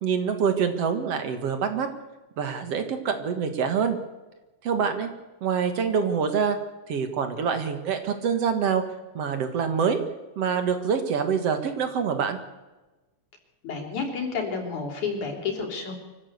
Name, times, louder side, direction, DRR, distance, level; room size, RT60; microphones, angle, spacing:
voice 1, 0.0-1.9 2.4-4.0 4.6-5.1 5.4-6.6 6.9-8.8 9.1-10.0 10.4-12.4, right 6 dB, 60° right, 7 dB, 2.6 m, -25 dB
voice 2, 13.6-15.9, left 5 dB, 90° left, 3 dB, 5.1 m, -30 dB
24.5 x 15.0 x 8.1 m, 1.1 s
omnidirectional pair, 3.3 m